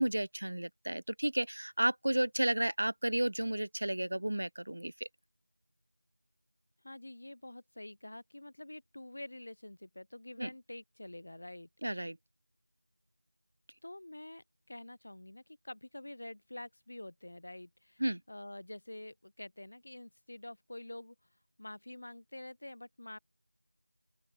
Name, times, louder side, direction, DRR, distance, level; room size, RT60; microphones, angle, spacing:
voice 1, 0.0-4.9 10.4-10.5 11.8-12.2 18.0-18.2, right 1 dB, 40° right, 0.8 m, -32 dB
voice 2, 6.8-11.7 13.8-21.2 21.6-23.2, left 1 dB, 30° left, 6.9 m, -47 dB
open air
figure-of-eight pair, 180°, 0 cm